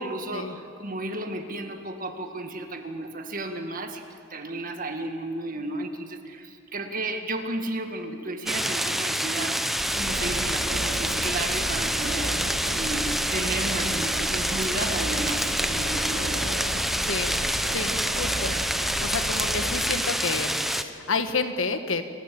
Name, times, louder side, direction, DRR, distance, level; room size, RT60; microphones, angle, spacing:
voice 1, 0.0-4.0 4.3-12.3 12.7-16.4 17.0-17.1, right 2 dB, 45° right, 6 dB, 1.8 m, -33 dB
sound 1, 8.5-20.8, equal, ahead, 0.8 m, -27 dB
sound 2, 9.8-19.7, right 1 dB, 90° right, 2.6 m, -34 dB
sound 3, 10.2-16.4, left 1 dB, 45° left, 5.8 m, -46 dB
voice 2, 17.0-17.4 17.7-18.6 19.0-22.0, left 4 dB, 85° left, 8 dB, 1.6 m, -30 dB
28.5 x 13.5 x 8.6 m, 2.5 s
head